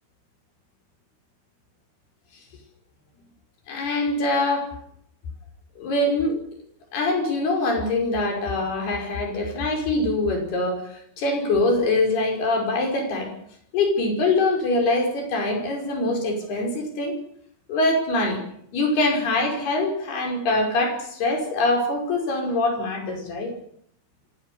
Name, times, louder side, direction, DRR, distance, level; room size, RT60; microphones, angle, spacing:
voice 1, 3.7-4.7 5.8-6.4 6.9-13.3 13.7-17.1 17.7-18.4 18.7-23.5, left 2 dB, 55° left, 3 dB, 7.0 m, -23 dB
25.0 x 18.5 x 6.9 m, 0.67 s
omnidirectional pair, 5.7 m